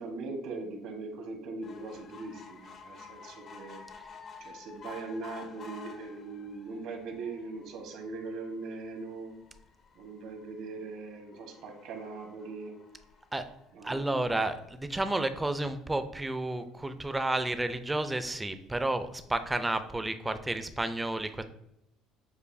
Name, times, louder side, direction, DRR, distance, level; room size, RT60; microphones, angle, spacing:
voice 1, 0.0-3.9 4.4-9.3 9.9-12.7 13.7-14.0, right 3 dB, 70° right, 3 dB, 1.1 m, -40 dB
sound 1, 1.6-14.2 14.8-14.9 15.2-15.3 15.5-15.6, left 5 dB, 45° left, 0.5 m, -52 dB
voice 2, 13.8-21.4, right 2 dB, 10° right, 10 dB, 0.4 m, -31 dB
6.8 x 2.5 x 2.6 m, 0.80 s
supercardioid pair, 105°, 0 cm